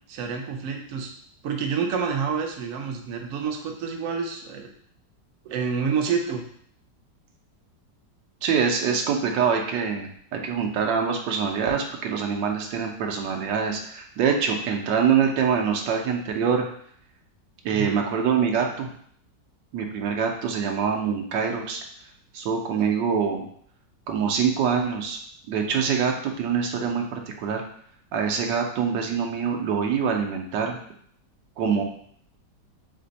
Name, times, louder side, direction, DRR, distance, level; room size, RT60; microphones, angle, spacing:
voice 1, 0.1-1.1 1.4-4.7 5.4-6.4 17.7-18.0, right 6 dB, 65° right, 2 dB, 0.9 m, -28 dB
voice 2, 8.4-16.7 17.6-18.9 19.7-21.8 22.3-23.5 24.1-25.2 25.5-27.6 28.1-30.8 31.6-31.8, right 6 dB, 85° right, 2 dB, 1.3 m, -25 dB
3.4 x 3.3 x 4.0 m, 0.63 s
omnidirectional pair, 1.9 m